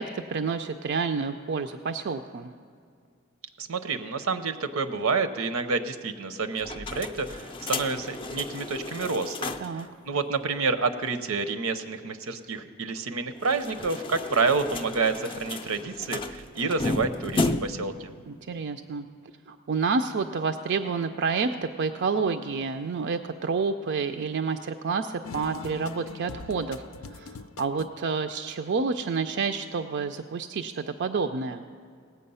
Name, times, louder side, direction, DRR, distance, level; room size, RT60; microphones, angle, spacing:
voice 1, 0.0-2.5 9.6-9.9 18.3-19.1 19.5-26.8 27.1-31.6, right 5 dB, 55° right, 7 dB, 0.4 m, -29 dB
voice 2, 3.6-18.1, right 4 dB, 85° right, 10 dB, 0.7 m, -29 dB
sound 1, 6.6-9.8 10.2-10.3 10.5-10.6 13.4-17.9, left 2 dB, 25° left, 0.5 m, -33 dB
sound 2, 25.2-28.1, left 4 dB, 85° left, 0.5 m, -42 dB
18.0 x 8.3 x 5.5 m, 2.2 s
head